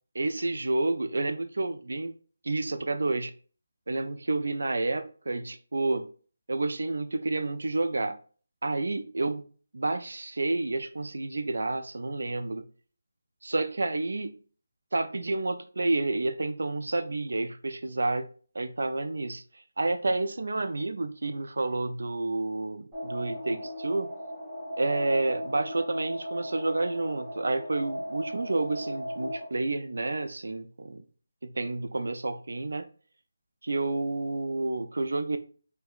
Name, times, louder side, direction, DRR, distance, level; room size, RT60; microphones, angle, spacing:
voice 1, 0.1-2.1 2.4-3.3 3.9-6.1 6.5-8.2 8.6-9.4 9.7-12.7 13.4-14.3 14.9-18.3 18.5-24.1 24.8-31.0 31.4-32.9 33.6-35.4, right 2 dB, 75° right, 0.3 m, -30 dB
sound 1, 22.9-29.4, equal, 10° right, 1.0 m, -37 dB
4.6 x 2.1 x 2.3 m
figure-of-eight pair, 175°, 0 cm